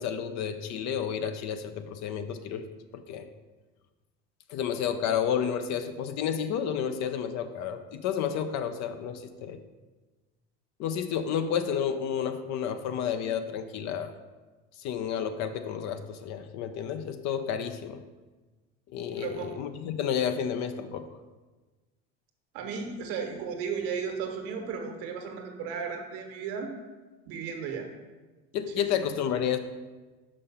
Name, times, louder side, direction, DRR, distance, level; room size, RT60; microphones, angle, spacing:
voice 1, 0.0-2.6 2.9-3.2 4.5-9.6 10.8-14.1 14.8-18.0 18.9-21.1 28.5-29.6, left 8 dB, 55° left, 9 dB, 0.7 m, -31 dB
voice 2, 19.2-19.5 22.5-26.7 27.3-27.9 28.8-29.0, right 6 dB, 70° right, 4 dB, 1.3 m, -35 dB
5.6 x 5.3 x 5.6 m, 1.3 s
supercardioid pair, 90°, 32 cm